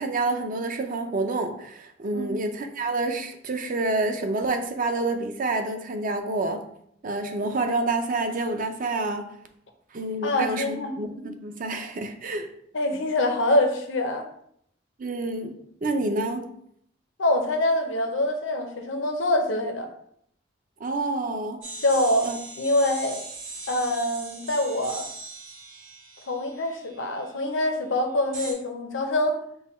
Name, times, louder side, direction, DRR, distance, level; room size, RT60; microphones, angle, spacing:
voice 1, 0.0-6.7 7.0-9.3 9.9-12.5 15.0-15.5 15.8-16.5 20.8-21.6 22.2-22.4, right 2 dB, 45° right, 6 dB, 0.5 m, -28 dB
voice 2, 10.2-10.9 12.7-14.3 17.2-19.9 21.8-22.3 22.6-23.2 23.7-25.1 26.3-29.4, left 1 dB, 75° left, 4 dB, 0.7 m, -25 dB
sound 1, 21.6-27.3 28.3-28.5, right 3 dB, 85° right, 1.9 m, -40 dB
5.5 x 2.2 x 4.2 m, 0.70 s
head